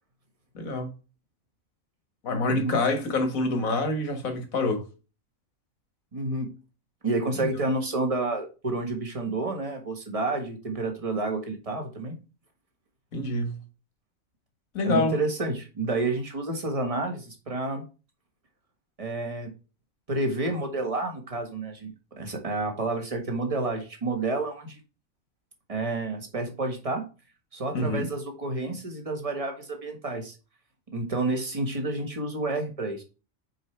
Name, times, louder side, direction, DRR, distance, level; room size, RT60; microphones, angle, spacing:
voice 1, 0.5-0.9 2.2-4.9 7.4-7.5 13.1-13.6 14.7-15.2 27.7-28.1, left 2 dB, 85° left, 2.0 m, -26 dB
voice 2, 2.4-2.8 6.1-6.5 7.0-12.2 14.8-17.8 19.0-19.5 20.1-24.8 25.7-27.1 27.5-30.4 30.9-33.0, right 2 dB, 25° right, 1.7 m, -29 dB
7.4 x 4.6 x 3.3 m
omnidirectional pair, 1.4 m